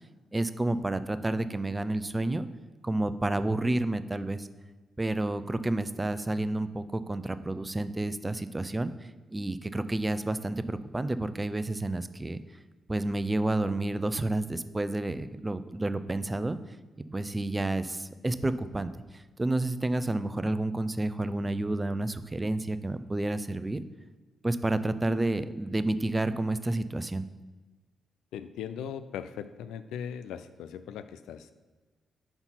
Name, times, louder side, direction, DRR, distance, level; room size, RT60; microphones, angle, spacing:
voice 1, 0.3-2.5 2.8-4.5 5.0-8.9 9.3-12.4 12.9-16.6 17.1-23.8 24.4-27.3, right 2 dB, 25° right, 13 dB, 0.4 m, -30 dB
voice 2, 28.3-31.5, left 8 dB, 80° left, 12 dB, 0.3 m, -39 dB
5.6 x 4.4 x 5.6 m, 1.3 s
hypercardioid pair, 45°, 0 cm